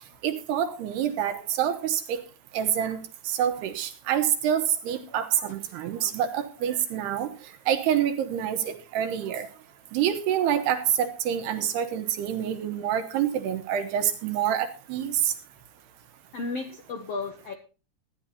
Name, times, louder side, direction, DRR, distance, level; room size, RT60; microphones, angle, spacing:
voice 1, 0.0-2.2 2.5-9.5 9.9-15.3, right 9 dB, 85° right, 7 dB, 3.4 m, -27 dB
voice 2, 16.3-17.5, left 3 dB, 70° left, 4 dB, 1.5 m, -34 dB
14.0 x 10.0 x 4.2 m, 0.33 s
omnidirectional pair, 4.6 m